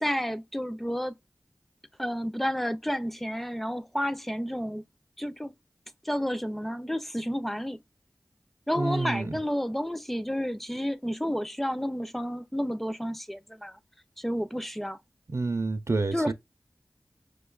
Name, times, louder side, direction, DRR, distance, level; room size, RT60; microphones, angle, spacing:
voice 1, 0.0-1.1 2.0-4.8 5.2-5.5 6.0-7.8 8.7-13.8 14.2-15.0 16.1-16.3, equal, 5° left, 0.4 m, -31 dB
voice 2, 8.8-9.4 15.3-16.3, right 3 dB, 50° right, 0.5 m, -28 dB
4.9 x 2.2 x 2.3 m
wide cardioid pair, 40°, 6 cm